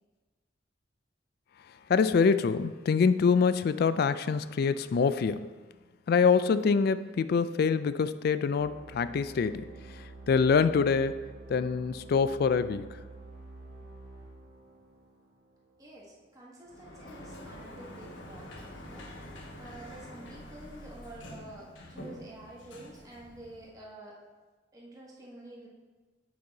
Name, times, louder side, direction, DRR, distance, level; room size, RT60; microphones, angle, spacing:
voice 1, 1.9-5.5 6.1-9.7 10.3-11.2 11.5-12.9, left 5 dB, 55° left, 13 dB, 0.3 m, -25 dB
sound 1, 8.6-16.1, right 2 dB, 70° right, 1.2 m, -48 dB
voice 2, 15.8-19.1 19.6-24.2 24.7-25.7, right 1 dB, 20° right, -4 dB, 1.3 m, -49 dB
Sliding door, 16.7-23.8, equal, 75° left, 1.0 m, -46 dB
7.9 x 5.4 x 3.9 m, 1.3 s
head